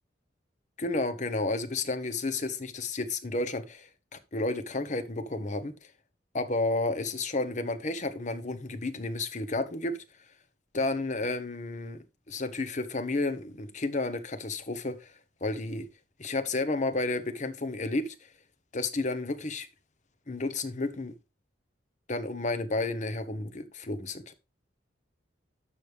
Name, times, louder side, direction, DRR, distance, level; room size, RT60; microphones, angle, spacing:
voice 1, 0.8-5.7 6.3-10.0 10.7-15.1 15.4-15.9 16.2-18.3 18.7-19.7 20.3-21.1 22.1-24.3, left 2 dB, 40° left, 1.0 m, -31 dB
11.5 x 6.6 x 3.3 m
head